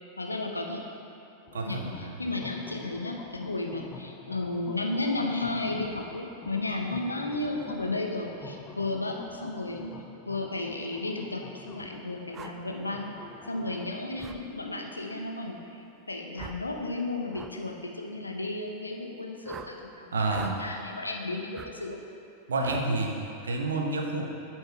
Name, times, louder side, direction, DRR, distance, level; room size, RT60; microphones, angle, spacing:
voice 1, 0.2-0.8 1.7-13.1 13.4-22.0, left 2 dB, 80° left, 2 dB, 0.7 m, -33 dB
sound 1, 1.5-14.0, left 5 dB, 30° left, 0.6 m, -46 dB
voice 2, 1.5-2.2 20.1-20.6 22.5-24.3, right 2 dB, 70° right, 2 dB, 0.8 m, -29 dB
sound 2, 12.3-12.5 14.2-14.4 16.3-16.7 17.3-17.5 19.4-19.7 20.3-20.6 21.5-21.7 22.6-22.9, right 6 dB, 25° right, 0.4 m, -43 dB
9.0 x 4.5 x 4.6 m, 2.9 s
figure-of-eight pair, 90°, 0 cm